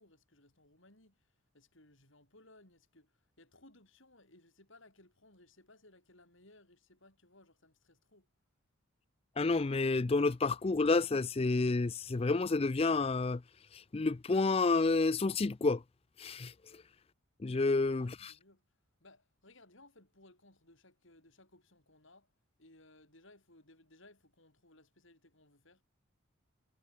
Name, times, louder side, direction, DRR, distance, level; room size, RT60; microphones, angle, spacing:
voice 1, 0.0-8.3 17.7-18.6 19.0-22.3 22.6-25.8, left 2 dB, 60° left, 7.2 m, -62 dB
voice 2, 9.4-13.4 13.9-15.8 16.2-16.5 17.4-18.3, left 3 dB, 25° left, 0.4 m, -29 dB
head